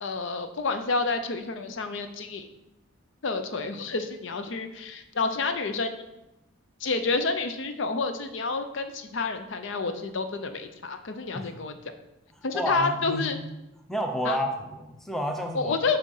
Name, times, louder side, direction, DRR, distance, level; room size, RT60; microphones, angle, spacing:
voice 1, 0.0-2.5 3.2-6.0 6.8-11.7 12.4-13.4 14.2-14.4 15.5-16.0, left 4 dB, 60° left, 8 dB, 0.5 m, -29 dB
voice 2, 12.5-13.2 13.9-15.7, equal, ahead, 3 dB, 0.6 m, -30 dB
6.3 x 4.2 x 5.5 m, 0.94 s
head